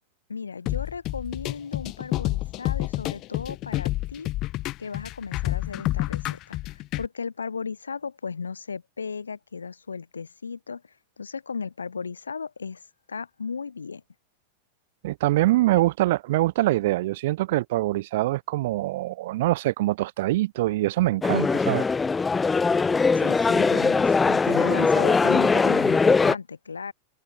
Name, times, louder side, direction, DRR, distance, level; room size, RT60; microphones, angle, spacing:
voice 1, 0.3-4.3 4.8-10.8 11.2-12.8 13.1-14.0 23.1-26.9, left 5 dB, 75° left, 2.9 m, -35 dB
sound 1, 0.7-7.1, left 17 dB, 35° left, 2.5 m, -29 dB
voice 2, 15.0-21.8, right 17 dB, 55° right, 0.5 m, -24 dB
sound 2, 21.2-26.4, left 4 dB, 15° left, 1.0 m, -21 dB
figure-of-eight pair, 90°, 0 cm